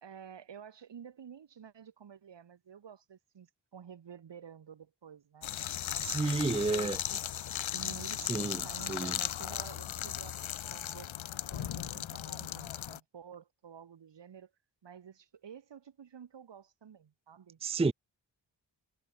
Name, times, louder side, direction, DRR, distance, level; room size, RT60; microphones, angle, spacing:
voice 1, 0.0-6.2 6.4-7.2 7.7-11.1 11.5-14.5 14.8-17.6, right 8 dB, 65° right, 1.8 m, -51 dB
sound 1, 5.4-13.0, left 11 dB, 80° left, 1.2 m, -37 dB
voice 2, 6.0-7.0 8.3-8.6 8.9-9.2 17.6-17.9, right 3 dB, 15° right, 0.6 m, -30 dB
cardioid pair, 55°, 46 cm